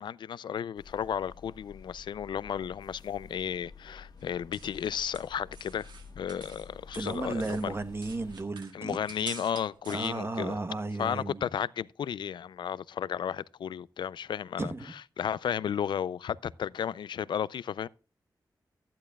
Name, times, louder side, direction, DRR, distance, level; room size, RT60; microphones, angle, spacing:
voice 1, 0.0-5.9 6.2-7.8 8.7-10.6 11.0-14.7 15.2-17.9, left 8 dB, 90° left, 0.4 m, -33 dB
sound 1, 0.8-8.4, left 5 dB, 60° left, 1.4 m, -51 dB
sound 2, 4.2-6.7 6.9-10.1, right 5 dB, 80° right, 2.0 m, -48 dB
voice 2, 6.9-9.0 9.9-11.5 14.6-14.9, right 3 dB, 35° right, 1.1 m, -34 dB
14.5 x 10.5 x 2.3 m
wide cardioid pair, 110°, 8 cm